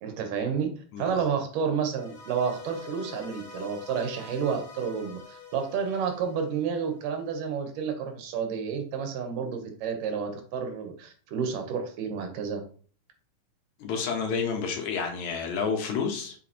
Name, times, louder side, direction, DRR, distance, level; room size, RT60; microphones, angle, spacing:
voice 1, 0.0-0.7 1.0-12.6, right 6 dB, 85° right, 5 dB, 2.6 m, -30 dB
sound 1, 1.9-7.1, left 6 dB, 40° left, 1.4 m, -45 dB
voice 2, 13.8-16.4, left 5 dB, 70° left, 4 dB, 2.2 m, -30 dB
6.8 x 4.8 x 2.9 m, 0.43 s
omnidirectional pair, 3.8 m